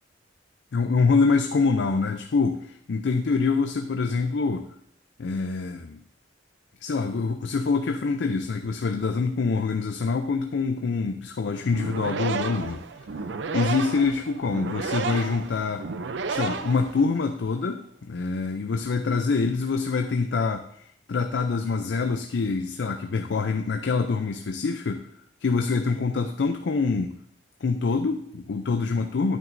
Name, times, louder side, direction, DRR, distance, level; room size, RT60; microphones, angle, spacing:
voice 1, 0.7-4.7 5.2-6.0 6.8-12.8 13.5-15.9 16.3-20.7 21.1-25.0 25.4-27.1 27.6-29.4, left 4 dB, 70° left, 6 dB, 0.5 m, -25 dB
sound 1, 11.6-17.4, right 5 dB, 70° right, 0.5 m, -32 dB
9.3 x 8.8 x 2.6 m, 0.70 s
head